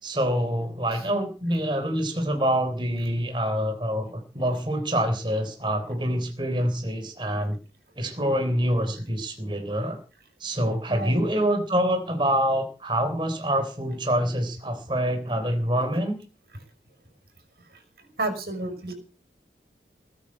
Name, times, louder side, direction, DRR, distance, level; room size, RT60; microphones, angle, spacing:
voice 1, 0.0-7.6 8.0-10.0 10.4-16.2, equal, 25° right, 6 dB, 3.5 m, -26 dB
voice 2, 10.9-11.2 18.2-18.9, right 2 dB, 60° right, 7 dB, 6.2 m, -30 dB
19.5 x 9.2 x 7.5 m, 0.37 s
head